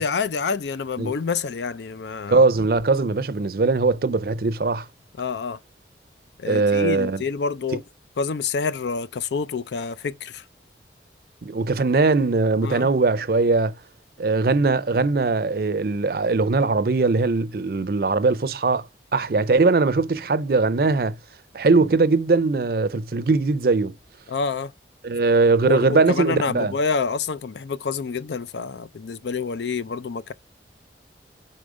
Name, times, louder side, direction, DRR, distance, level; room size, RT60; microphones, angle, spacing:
voice 1, 0.0-2.5 5.2-5.6 6.4-7.8 8.2-10.4 12.6-12.9 24.3-24.7 25.6-30.3, left 5 dB, 75° left, 0.4 m, -27 dB
voice 2, 2.3-4.9 6.5-7.2 7.7-7.8 11.4-13.7 14.2-18.9 19.1-21.2 21.5-23.9 25.0-26.7, right 3 dB, 55° right, 0.5 m, -20 dB
4.9 x 4.2 x 4.9 m
head